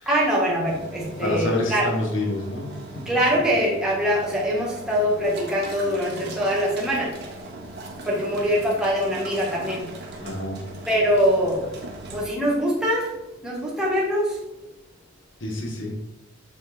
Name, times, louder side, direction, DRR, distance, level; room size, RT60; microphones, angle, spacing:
voice 1, 0.1-1.8 3.0-7.1 8.0-9.9 10.9-11.6 12.1-13.1 13.4-14.4, equal, 5° right, -5 dB, 1.6 m, -23 dB
sound 1, 0.6-12.2, right 2 dB, 55° right, 1.4 m, -39 dB
voice 2, 1.2-3.1 10.2-10.6 15.4-16.0, left 2 dB, 65° left, -1 dB, 1.4 m, -27 dB
7.0 x 4.8 x 4.3 m, 0.91 s
head